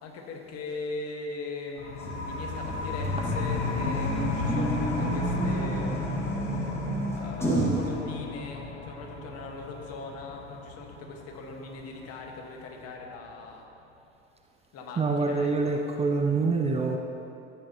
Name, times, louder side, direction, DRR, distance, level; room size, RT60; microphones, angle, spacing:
voice 1, 0.0-6.3 7.2-13.6 14.7-15.8, left 3 dB, 45° left, 1 dB, 1.7 m, -40 dB
sound 1, 1.8-13.1, left 5 dB, 80° left, 1.1 m, -35 dB
sound 2, 2.0-7.9, right 1 dB, 10° left, 2.3 m, -30 dB
voice 2, 15.0-17.0, right 4 dB, 20° right, 3 dB, 0.6 m, -25 dB
14.0 x 9.0 x 3.0 m, 2.7 s
hypercardioid pair, 75°, 33 cm